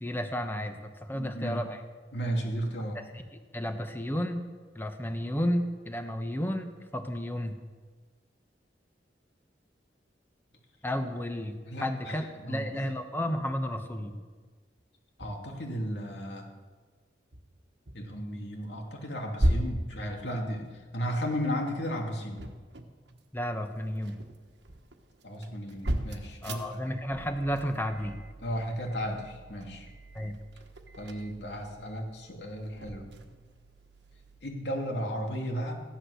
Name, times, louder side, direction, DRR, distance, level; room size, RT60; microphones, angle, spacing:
voice 1, 0.0-1.8 2.9-3.0 3.5-4.4 4.7-7.5 10.8-14.2 23.3-24.2 26.4-28.2 30.1-30.4, equal, 10° left, 6 dB, 1.1 m, -32 dB
voice 2, 1.1-1.6 2.1-3.0 11.7-12.9 15.2-16.5 17.9-22.4 25.2-26.8 28.4-29.9 31.0-33.2 34.4-35.7, equal, 70° left, 1 dB, 2.6 m, -34 dB
sound 1, 14.8-14.9 15.2-15.6 17.3-18.2 18.6-18.9 19.4-21.3 22.1-23.5 23.8-34.4, equal, 75° right, 1.4 m, -37 dB
15.5 x 11.0 x 6.5 m, 1.4 s
head